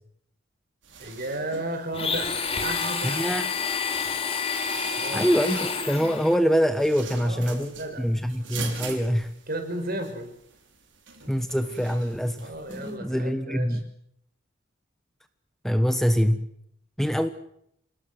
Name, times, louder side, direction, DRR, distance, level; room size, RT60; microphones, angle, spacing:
sound 1, 0.8-13.0, right 5 dB, 65° right, 6.3 m, -44 dB
voice 1, 1.0-3.3 5.0-5.3 7.2-8.1 9.5-10.3 12.4-13.8, right 1 dB, 50° right, 6 dB, 5.9 m, -34 dB
Domestic sounds home sounds, 1.9-6.4, left 5 dB, 30° left, 3.0 m, -29 dB
voice 2, 3.0-3.5 5.1-7.7 8.0-9.3 11.3-13.8 15.6-16.5 17.0-17.3, equal, ahead, 9 dB, 1.2 m, -24 dB
28.5 x 19.0 x 7.8 m, 0.72 s
head